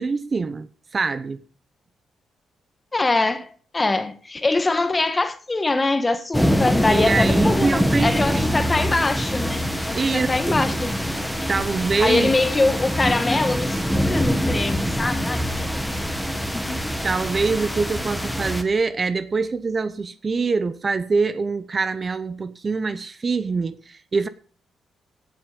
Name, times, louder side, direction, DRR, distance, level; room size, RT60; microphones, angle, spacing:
voice 1, 0.0-1.4 6.9-8.6 9.9-10.7 11.5-12.3 17.0-24.3, right 4 dB, 30° right, 0.8 m, -24 dB
voice 2, 2.9-10.9 12.0-15.4 16.0-16.2 16.5-17.0, left 2 dB, 20° left, 1.7 m, -23 dB
sound 1, 6.3-18.6, equal, ahead, 1.9 m, -24 dB
17.0 x 8.7 x 5.2 m
cardioid pair, 125°, 0 cm